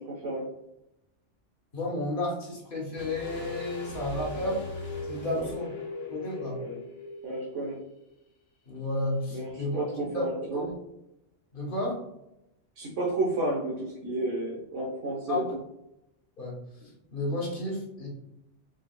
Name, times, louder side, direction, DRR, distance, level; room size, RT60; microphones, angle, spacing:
voice 1, 0.1-0.4 5.4-5.5 6.6-6.8 7.2-7.8 9.3-9.4 9.8-10.6 12.8-15.4, right 2 dB, 80° right, -5 dB, 1.4 m, -31 dB
voice 2, 1.7-4.6 5.0-5.8 6.1-6.6 8.7-9.8 10.1-10.2 10.5-10.7 11.5-12.0 15.3-15.5 16.4-18.1, left 1 dB, 45° left, -2 dB, 1.4 m, -32 dB
sound 1, 3.0-8.1, left 3 dB, 80° left, 1.4 m, -38 dB
4.7 x 4.4 x 2.4 m, 0.86 s
omnidirectional pair, 1.2 m